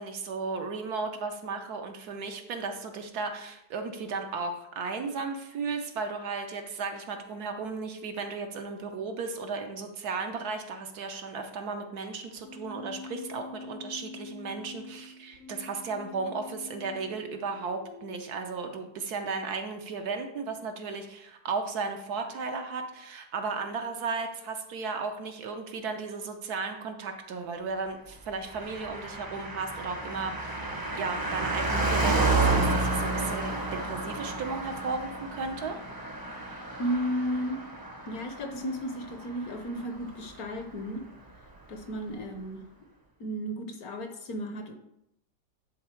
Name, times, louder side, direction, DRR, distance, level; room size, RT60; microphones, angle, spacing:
voice 1, 0.0-30.6 30.9-35.8, right 4 dB, 65° right, 5 dB, 1.3 m, -35 dB
Keyboard (musical), 12.4-18.3, left 5 dB, 90° left, 1.9 m, -46 dB
Car passing by, 28.5-40.3 40.6-40.7, right 2 dB, 20° right, 0.7 m, -31 dB
voice 2, 36.8-37.7 38.1-41.1 41.7-42.6 43.2-44.7, equal, 65° left, 6 dB, 1.2 m, -33 dB
10.5 x 3.9 x 4.4 m, 0.78 s
omnidirectional pair, 1.9 m